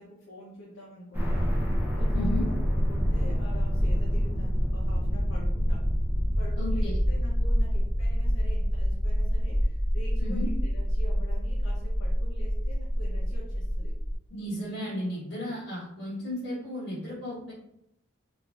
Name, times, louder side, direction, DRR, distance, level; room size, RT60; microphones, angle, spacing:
voice 1, 0.0-5.9 6.4-14.0, equal, 80° left, -4 dB, 0.6 m, -46 dB
sound 1, 1.1-14.2, equal, 10° right, 0.5 m, -26 dB
voice 2, 2.1-2.4 6.6-6.9 10.2-10.5 14.3-17.5, left 1 dB, 55° left, -7 dB, 1.1 m, -34 dB
3.3 x 2.4 x 2.3 m, 0.78 s
head